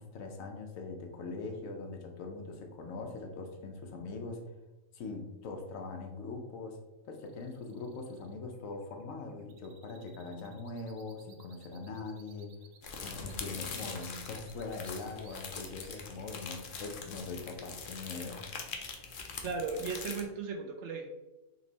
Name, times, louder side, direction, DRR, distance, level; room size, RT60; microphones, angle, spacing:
voice 1, 0.0-4.4 4.9-6.8 7.1-12.5 13.0-18.4, left 3 dB, 70° left, 3 dB, 1.1 m, -42 dB
sound 1, 7.1-16.9, right 7 dB, 85° right, 1.1 m, -61 dB
sound 2, 12.8-20.2, left 5 dB, 55° left, 0.6 m, -43 dB
voice 2, 19.4-21.1, right 4 dB, 65° right, 3 dB, 0.8 m, -36 dB
4.3 x 3.0 x 4.0 m, 1.0 s
omnidirectional pair, 1.5 m